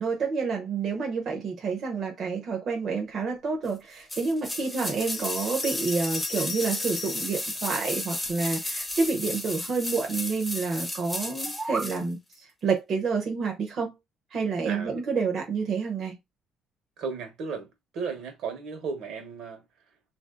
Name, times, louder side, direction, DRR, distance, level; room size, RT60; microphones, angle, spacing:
voice 1, 0.0-13.9 14.3-16.2, right 4 dB, 45° right, 0.8 m, -29 dB
sound 1, 4.1-12.0 12.3-12.4, left 1 dB, 10° left, 0.7 m, -33 dB
Bell, 5.0-7.5 8.2-9.1, left 8 dB, 85° left, 0.4 m, -41 dB
sound 2, 11.3-12.0, right 3 dB, 20° right, 0.3 m, -34 dB
voice 2, 17.0-17.7 17.9-19.6, right 5 dB, 70° right, 1.1 m, -34 dB
2.9 x 2.6 x 3.7 m
cardioid pair, 135°, 0 cm